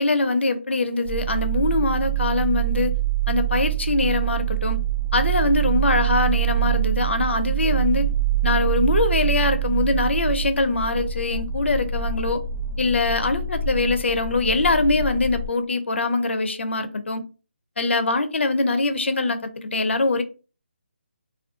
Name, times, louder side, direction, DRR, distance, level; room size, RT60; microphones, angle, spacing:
voice 1, 0.0-3.0 3.3-4.8 5.1-8.1 8.4-12.4 12.8-17.2 17.8-20.2, left 3 dB, 75° left, 0.4 m, -23 dB
sound 1, 1.0-15.5, right 10 dB, 45° right, 0.4 m, -25 dB
2.5 x 2.2 x 2.4 m
figure-of-eight pair, 160°, 6 cm